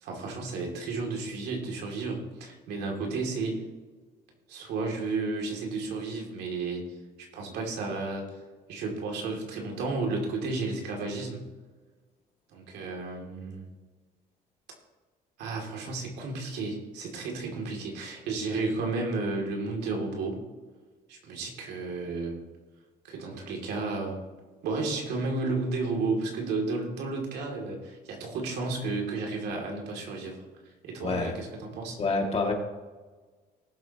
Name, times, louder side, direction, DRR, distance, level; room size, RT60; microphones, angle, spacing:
voice 1, 0.0-3.6 4.5-6.8 7.3-8.3 8.7-11.4 12.5-13.6 15.4-20.4 21.1-22.4 23.0-24.2 24.6-30.4 30.8-32.0, right 3 dB, 80° right, 1 dB, 2.7 m, -32 dB
voice 2, 31.0-31.3 32.0-32.5, left 3 dB, 35° left, 1 dB, 2.3 m, -27 dB
19.0 x 7.6 x 3.0 m, 1.4 s
cardioid pair, 110°, 17 cm